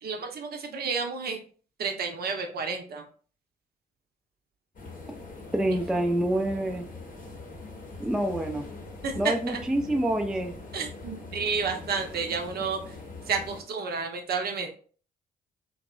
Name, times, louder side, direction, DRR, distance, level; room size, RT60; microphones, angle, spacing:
voice 1, 0.0-1.4 1.8-3.0 9.0-9.6 10.7-13.0 13.3-14.7, right 5 dB, 50° right, 4 dB, 0.6 m, -31 dB
sound 1, 4.7-13.6, left 3 dB, 40° left, 0.8 m, -42 dB
voice 2, 5.5-6.8 8.0-8.6 9.2-10.5, right 1 dB, 5° right, 4 dB, 0.3 m, -27 dB
2.7 x 2.0 x 2.3 m, 0.42 s
hypercardioid pair, 45°, 21 cm